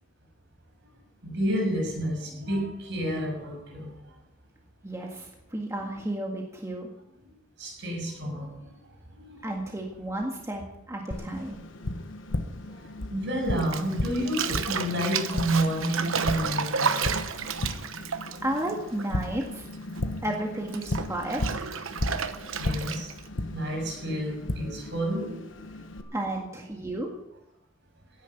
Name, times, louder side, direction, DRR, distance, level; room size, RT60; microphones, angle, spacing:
voice 1, 1.2-4.1 5.0-5.1 7.6-8.7 9.1-9.5 11.3-11.4 12.6-17.1 17.6-17.8 20.1-20.2 22.6-23.1 23.5-25.6 25.9-26.1, equal, 60° right, 0 dB, 6.7 m, -30 dB
voice 2, 4.8-6.9 9.4-11.6 18.0-19.7 20.2-21.6 26.1-27.1, right 1 dB, 15° right, 0 dB, 1.8 m, -33 dB
Tap, 11.1-26.0, left 1 dB, 65° left, 1.3 m, -35 dB
Bathtub (filling or washing), 13.6-19.4 19.7-23.3, right 6 dB, 80° right, 1.1 m, -31 dB
17.0 x 10.5 x 6.0 m, 0.87 s
head